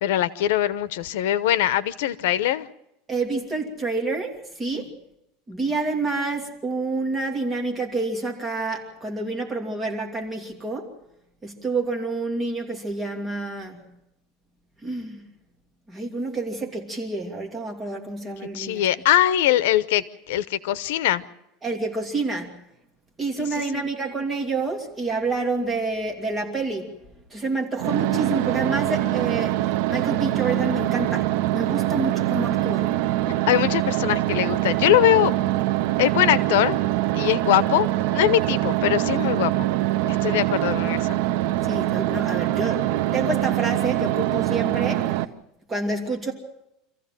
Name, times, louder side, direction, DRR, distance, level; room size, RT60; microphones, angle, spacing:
voice 1, 0.0-2.7 4.7-4.8 18.5-21.2 23.4-23.9 33.5-35.3 36.0-36.8 37.1-39.7 40.0-41.2, left 13 dB, 85° left, 15 dB, 0.9 m, -22 dB
voice 2, 3.1-4.9 5.5-10.9 11.4-13.8 14.8-15.2 15.9-18.8 21.6-22.6 23.2-26.9 27.3-29.6 29.9-32.9 41.6-45.1 45.7-46.3, right 3 dB, 15° right, 1 dB, 2.7 m, -28 dB
sound 1, 27.8-45.2, right 15 dB, 70° right, 0.9 m, -24 dB
27.0 x 15.0 x 7.6 m, 0.86 s
supercardioid pair, 160°, 0 cm